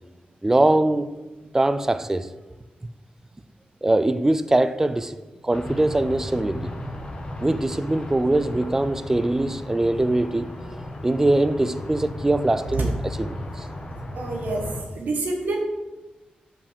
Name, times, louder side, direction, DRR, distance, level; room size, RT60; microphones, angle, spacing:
voice 1, 0.4-1.1 1.5-2.3 3.8-5.2 5.4-6.7 7.4-10.5 11.0-13.7, right 2 dB, 15° right, 0.4 m, -22 dB
sound 1, 5.5-14.8, left 1 dB, 35° left, 1.3 m, -35 dB
voice 2, 14.1-14.6 14.9-15.6, right 3 dB, 80° right, 1.7 m, -27 dB
5.7 x 5.1 x 6.7 m
wide cardioid pair, 105°, 3 cm